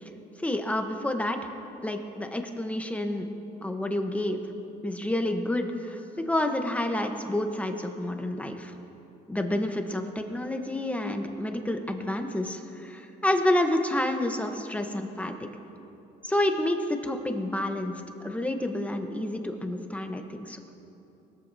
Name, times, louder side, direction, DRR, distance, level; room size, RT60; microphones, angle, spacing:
voice 1, 0.4-1.5 1.8-3.3 3.6-4.4 4.8-8.7 9.3-15.5 16.2-17.9 18.2-20.6, left 1 dB, 10° left, 5 dB, 1.0 m, -29 dB
20.5 x 13.5 x 2.8 m, 2.9 s
cardioid pair, 110°, 17 cm